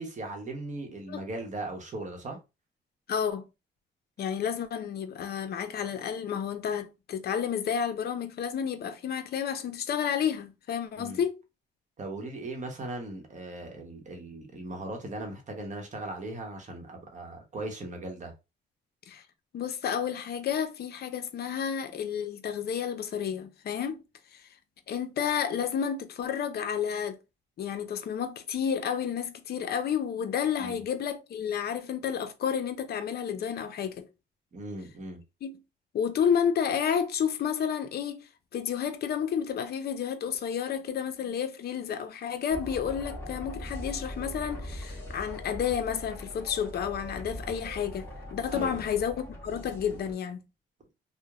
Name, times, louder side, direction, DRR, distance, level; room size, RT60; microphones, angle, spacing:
voice 1, 0.0-2.4 11.0-11.2 12.0-18.3 30.6-30.8 34.5-35.2 48.5-48.8, right 2 dB, 40° right, 0.9 m, -38 dB
voice 2, 3.1-3.4 4.2-11.4 19.1-19.2 19.5-24.0 24.3-24.5 24.9-27.2 27.6-34.1 35.4-35.6 35.9-50.4, left 8 dB, 55° left, 0.5 m, -31 dB
sound 1, 42.5-50.1, left 1 dB, 10° left, 1.1 m, -41 dB
2.9 x 2.1 x 2.4 m
cardioid pair, 90°, 20 cm